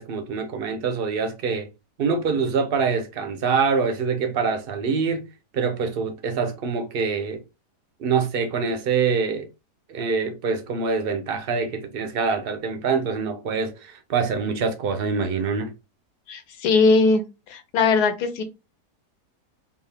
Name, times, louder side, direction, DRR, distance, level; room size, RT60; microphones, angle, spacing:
voice 1, 0.0-1.7 2.0-5.2 5.5-7.4 8.0-9.5 9.9-15.7, right 5 dB, 65° right, 0.5 m, -25 dB
voice 2, 16.3-17.2 17.5-18.4, left 4 dB, 75° left, 1.2 m, -20 dB
3.5 x 2.5 x 3.3 m
omnidirectional pair, 1.7 m